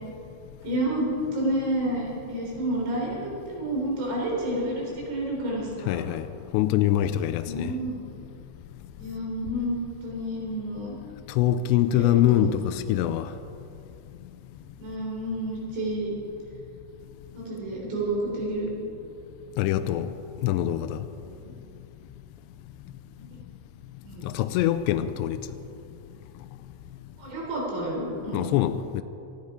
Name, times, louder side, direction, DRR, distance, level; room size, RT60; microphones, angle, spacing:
voice 1, 0.6-6.1 7.4-8.0 9.0-9.8 10.0-11.0 12.0-12.5 14.8-16.1 17.3-18.7 21.3-21.5 23.3-23.4 24.0-24.4 27.2-28.5, right 1 dB, 65° right, 5.9 m, -30 dB
voice 2, 5.9-6.3 6.5-7.7 11.3-13.3 19.6-20.1 20.4-21.1 24.2-25.4 28.3-29.0, left 12 dB, 85° left, 2.6 m, -24 dB
19.0 x 14.5 x 5.0 m
omnidirectional pair, 5.4 m